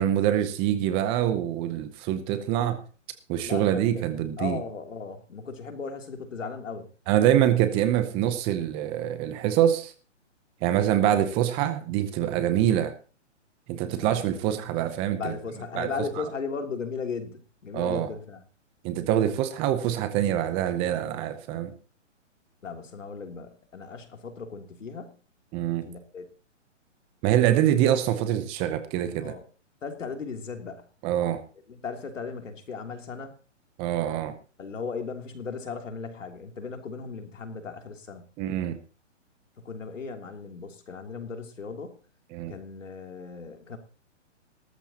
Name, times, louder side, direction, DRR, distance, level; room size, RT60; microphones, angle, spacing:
voice 1, 0.0-2.8 3.3-4.6 7.1-9.9 10.6-12.9 13.7-15.3 15.7-16.3 17.7-18.1 18.8-21.7 25.5-25.8 27.2-29.4 31.0-31.4 33.8-34.3 38.4-38.8 42.3-42.5, right 11 dB, 15° right, 10 dB, 0.7 m, -25 dB
voice 2, 3.4-3.8 4.4-6.9 14.0-14.4 15.2-18.4 22.6-25.1 25.8-26.2 29.2-29.4 29.8-30.8 31.7-33.3 34.6-38.2 39.6-42.0 42.5-43.8, left 5 dB, 80° left, 4 dB, 3.1 m, -36 dB
18.0 x 13.5 x 2.9 m, 0.37 s
hypercardioid pair, 150°, 37 cm